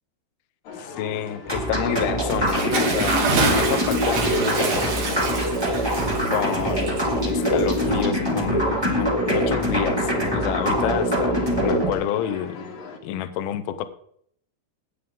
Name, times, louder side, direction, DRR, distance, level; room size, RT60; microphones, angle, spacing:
sound 1, 0.7-13.0, left 4 dB, 55° left, 2.6 m, -39 dB
voice 1, 1.0-5.4 6.3-12.6 13.0-13.9, left 11 dB, 75° left, 11 dB, 2.6 m, -29 dB
sound 2, 1.5-11.9, equal, 10° right, 1.1 m, -23 dB
Bathtub (filling or washing) / Splash splatter, 2.3-8.3, right 4 dB, 85° right, 4.6 m, -27 dB
14.5 x 9.4 x 3.7 m, 0.64 s
omnidirectional pair, 4.7 m